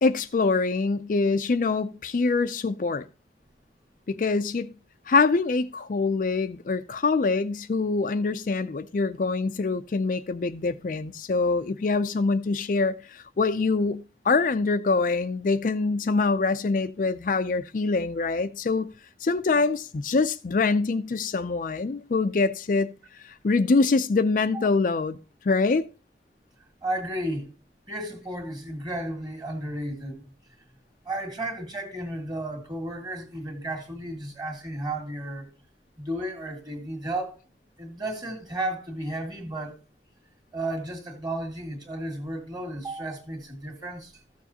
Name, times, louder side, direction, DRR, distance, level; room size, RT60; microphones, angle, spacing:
voice 1, 0.0-3.1 4.1-4.7 5.1-18.9 19.2-22.9 23.2-25.2 25.4-25.9, left 3 dB, 45° left, 0.4 m, -24 dB
voice 2, 26.8-27.5 27.9-30.3 31.1-35.5 36.0-37.4 37.8-39.8 40.5-44.2, right 1 dB, 25° right, 1.9 m, -33 dB
14.0 x 7.0 x 2.8 m
head